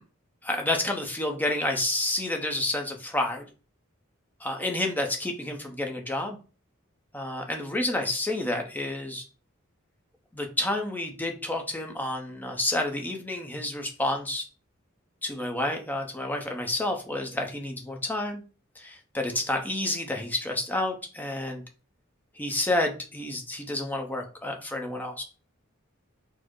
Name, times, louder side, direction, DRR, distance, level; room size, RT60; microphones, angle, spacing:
voice 1, 0.4-3.4 4.4-6.4 7.1-9.2 10.3-14.5 15.2-18.4 18.8-21.6 22.4-25.2, left 1 dB, 10° left, 3 dB, 0.6 m, -29 dB
4.3 x 2.0 x 4.5 m, 0.36 s
head